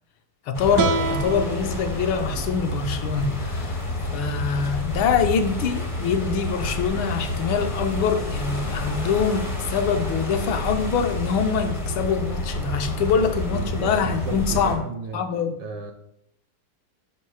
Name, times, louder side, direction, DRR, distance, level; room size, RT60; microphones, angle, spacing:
voice 1, 0.5-3.8 4.1-14.8 15.1-15.6, left 6 dB, 75° left, 1.4 m, -24 dB
sound 1, 0.5-14.8, left 1 dB, 35° left, 0.4 m, -29 dB
sound 2, 0.8-3.9, right 3 dB, 90° right, 0.7 m, -30 dB
voice 2, 13.4-15.2 15.6-15.9, right 5 dB, 75° right, 1.1 m, -35 dB
5.5 x 4.5 x 4.7 m
omnidirectional pair, 2.3 m